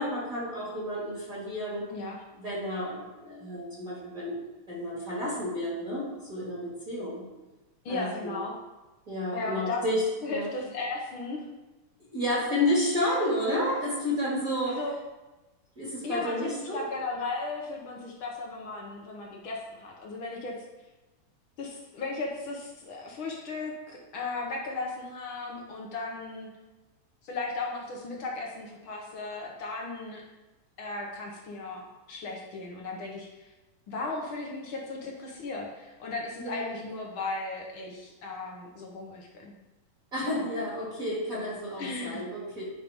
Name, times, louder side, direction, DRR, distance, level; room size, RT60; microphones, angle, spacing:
voice 1, 0.0-1.9 2.4-7.2 7.9-8.4 9.1-10.0 10.3-10.5 12.1-14.8 15.8-16.8 36.4-36.7 40.1-42.6, left 1 dB, 30° right, -7 dB, 2.2 m, -31 dB
voice 2, 1.9-2.2 7.8-8.5 9.3-9.8 10.2-11.4 14.6-14.9 16.0-20.5 21.6-26.5 27.2-30.2 30.8-33.5 33.9-39.5 40.2-40.3 41.8-42.3, left 3 dB, 60° left, -1 dB, 1.4 m, -36 dB
10.5 x 5.6 x 3.5 m, 1.1 s
omnidirectional pair, 3.4 m